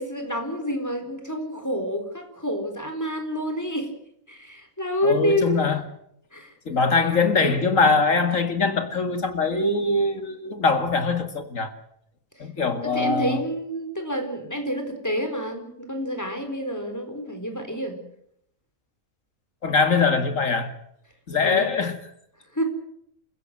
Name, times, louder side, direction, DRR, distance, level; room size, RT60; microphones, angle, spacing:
voice 1, 0.0-3.9 4.3-5.6 6.3-6.5 12.4-12.5 12.8-18.0 21.4-21.7 22.5-22.6, equal, 10° left, 4.3 m, -28 dB
voice 2, 5.0-5.8 6.7-11.7 12.4-13.4 19.6-20.7 21.3-22.0, left 4 dB, 70° left, 2.6 m, -22 dB
28.0 x 15.5 x 7.8 m
omnidirectional pair, 1.4 m